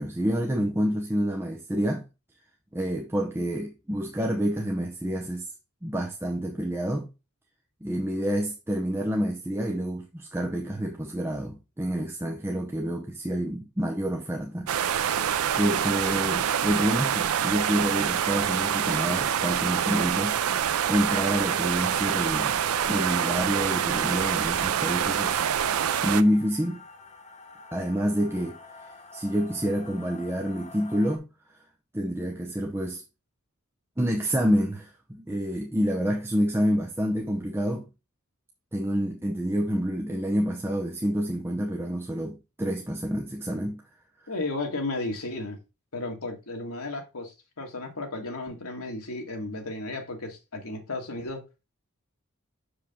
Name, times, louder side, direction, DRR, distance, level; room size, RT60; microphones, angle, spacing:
voice 1, 0.0-2.1 2.7-5.5 5.8-7.1 7.8-14.7 15.6-20.4 20.9-22.6 22.9-25.5 26.0-26.8 27.7-31.6 31.9-33.0 34.0-37.9 38.7-43.8, equal, 10° right, 0.7 m, -28 dB
sound 1, 14.7-26.2, right 9 dB, 75° right, 0.4 m, -26 dB
sound 2, 22.0-31.2, left 4 dB, 35° left, 1.1 m, -49 dB
voice 2, 44.3-45.6 45.9-51.4, left 2 dB, 80° left, 1.7 m, -34 dB
6.7 x 4.9 x 3.6 m
head